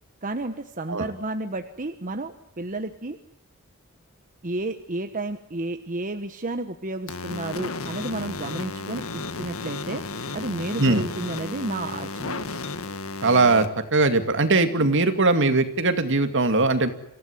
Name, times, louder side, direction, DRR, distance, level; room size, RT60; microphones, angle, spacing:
voice 1, 0.2-3.2 4.4-10.0 10.3-12.4, right 2 dB, 40° right, 7 dB, 1.2 m, -31 dB
sound 1, 7.1-13.7, left 3 dB, 75° left, 1.8 m, -33 dB
voice 2, 13.2-16.9, right 3 dB, 60° right, 8 dB, 2.4 m, -20 dB
26.0 x 16.5 x 9.8 m, 0.84 s
head